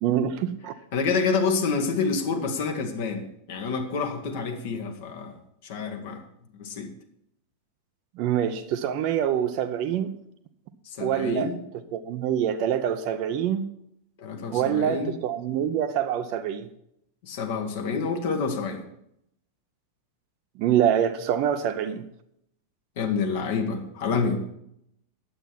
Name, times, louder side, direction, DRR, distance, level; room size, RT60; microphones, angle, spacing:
voice 1, 0.0-0.7 8.2-10.1 11.0-11.5 11.9-13.7 14.5-16.7 20.6-22.0, right 9 dB, 45° right, 9 dB, 0.7 m, -25 dB
voice 2, 0.9-5.4 5.6-6.2 6.5-6.9 10.9-11.6 14.2-15.1 17.2-18.8 23.0-24.5, left 5 dB, 55° left, 4 dB, 1.6 m, -28 dB
9.6 x 8.0 x 5.9 m, 0.75 s
figure-of-eight pair, 90°, 0 cm